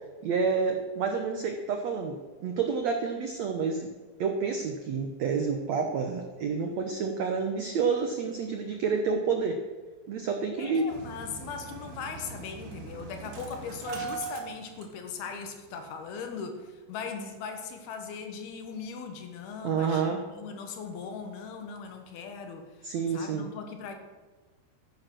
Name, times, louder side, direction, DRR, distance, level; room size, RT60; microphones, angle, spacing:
voice 1, 0.2-3.9 4.2-9.6 10.1-10.9 19.6-20.2 22.8-23.5, right 5 dB, 80° right, 4 dB, 1.5 m, -29 dB
voice 2, 10.6-23.9, left 5 dB, 75° left, 5 dB, 3.3 m, -39 dB
Engine starting, 10.9-15.4 15.7-15.8 16.1-16.3, right 5 dB, 60° right, 3.8 m, -40 dB
15.5 x 9.5 x 6.2 m, 1.3 s
omnidirectional pair, 4.7 m